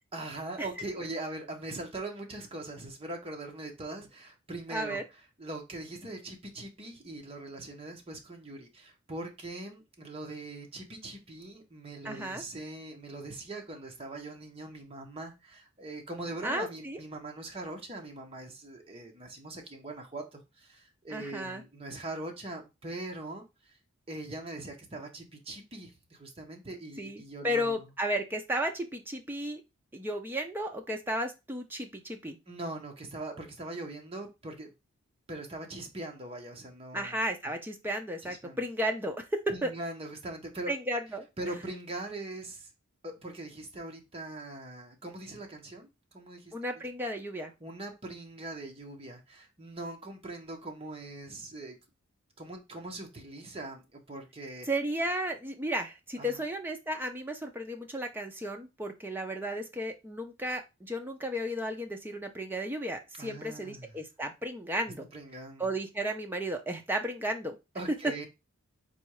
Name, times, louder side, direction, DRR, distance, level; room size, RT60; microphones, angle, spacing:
voice 1, 0.1-5.0 5.4-23.8 24.1-27.9 32.5-34.7 35.3-37.2 38.2-38.6 39.5-40.7 41.4-42.7 43.0-46.8 47.6-51.8 52.4-54.7 56.2-56.4 63.2-63.9 65.1-65.7 67.7-68.3, right 2 dB, 25° right, 0.8 m, -41 dB
voice 2, 4.7-5.0 12.0-12.4 16.4-17.0 21.1-21.6 27.0-29.6 29.9-32.4 36.9-39.7 40.7-41.3 46.5-47.5 54.7-65.1 65.6-67.6 68.0-68.3, equal, 10° right, 0.5 m, -34 dB
4.2 x 2.3 x 4.6 m
head